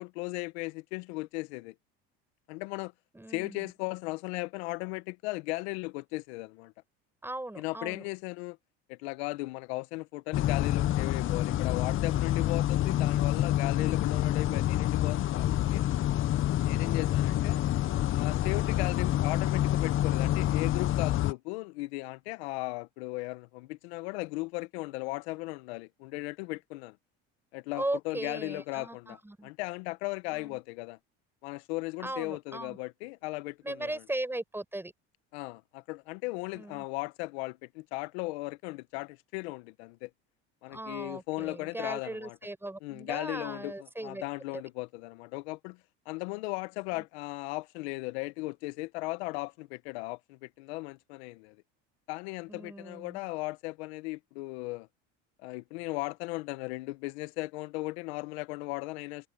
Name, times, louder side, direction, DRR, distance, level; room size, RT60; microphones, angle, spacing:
voice 1, 0.0-1.7 2.5-2.9 3.3-6.7 7.6-8.6 8.9-15.9 16.6-17.6 18.1-27.0 27.5-31.0 31.4-34.0 35.3-40.1 40.6-42.4 42.8-45.8 46.1-51.6 52.1-54.9 55.4-59.3, left 23 dB, 85° left, 1.0 m, -37 dB
voice 2, 3.1-3.7 7.2-8.0 16.7-17.0 27.7-29.5 30.3-30.6 32.0-32.8 33.6-34.9 36.5-36.8 40.7-44.2 44.5-44.6 46.9-47.0 52.5-53.2, right 1 dB, 5° right, 6.4 m, -38 dB
sound 1, 10.3-21.3, left 13 dB, 40° left, 0.6 m, -27 dB
supercardioid pair, 105°, 32 cm